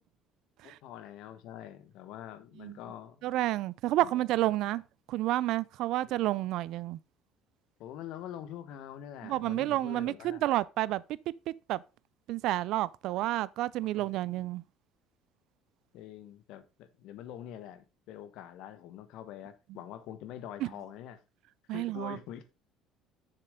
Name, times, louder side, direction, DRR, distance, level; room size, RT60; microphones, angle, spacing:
voice 1, 0.6-3.3 4.0-4.2 6.0-6.1 7.8-10.4 13.2-13.3 13.8-14.4 15.9-21.2 21.7-22.5, left 10 dB, 70° left, 1.2 m, -45 dB
voice 2, 3.2-4.8 5.1-7.0 9.2-11.0 11.7-11.8 12.3-14.6 20.6-20.7 21.7-22.2, right 15 dB, 70° right, 0.4 m, -30 dB
6.8 x 6.8 x 3.7 m
cardioid pair, 110°, 0 cm